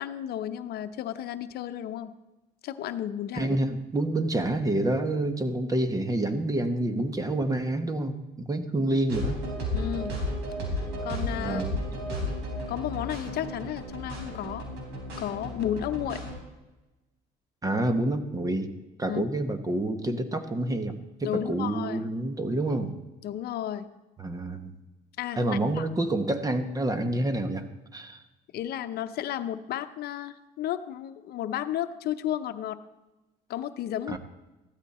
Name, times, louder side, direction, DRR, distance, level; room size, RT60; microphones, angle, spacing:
voice 1, 0.0-2.1 2.6-3.6 8.8-9.0 9.7-10.2 10.7-11.6 12.7-14.6 15.2-16.2 19.1-19.2 21.2-22.0 23.2-23.9 25.2-25.9 28.5-32.8 33.5-34.2, left 11 dB, 70° left, 10 dB, 0.8 m, -33 dB
voice 2, 3.3-9.4 11.4-11.8 17.6-18.7 19.0-22.9 24.2-24.8 25.4-27.6 27.9-28.2 34.1-34.2, right 1 dB, 20° right, 9 dB, 1.3 m, -28 dB
sound 1, 9.1-16.3, left 1 dB, 85° right, 4.5 m, -33 dB
15.0 x 13.0 x 4.3 m, 1.1 s
cardioid pair, 110°, 17 cm